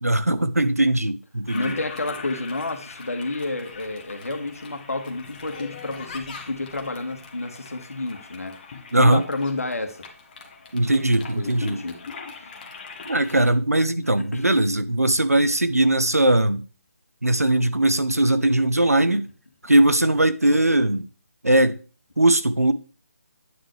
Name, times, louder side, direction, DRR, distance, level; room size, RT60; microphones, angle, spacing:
voice 1, 0.0-1.7 8.9-9.2 10.7-11.8 13.1-16.6 17.2-19.3 19.6-21.1 21.4-21.8 22.2-22.7, right 1 dB, 90° right, 0.8 m, -20 dB
voice 2, 1.5-8.5 9.0-10.0 11.3-12.0 14.2-14.5, left 2 dB, 75° left, 1.8 m, -30 dB
Toilet flush, 1.5-13.5, left 5 dB, 35° left, 1.6 m, -41 dB
9.1 x 6.2 x 3.3 m
figure-of-eight pair, 150°, 8 cm